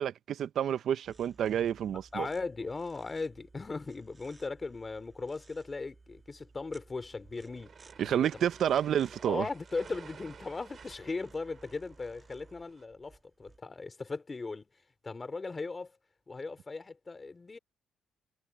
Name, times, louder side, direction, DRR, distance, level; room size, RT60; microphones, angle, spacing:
voice 1, 0.0-2.3 8.0-9.4, right 9 dB, 65° right, 0.6 m, -29 dB
sound 1, 1.0-13.6, right 3 dB, 25° right, 2.2 m, -59 dB
voice 2, 2.1-7.7 8.0-8.5 9.2-14.7 15.0-15.9 16.3-17.6, left 3 dB, 25° left, 3.0 m, -38 dB
sound 2, 7.2-12.8, right 6 dB, 50° right, 4.9 m, -54 dB
cardioid pair, 90°, 0 cm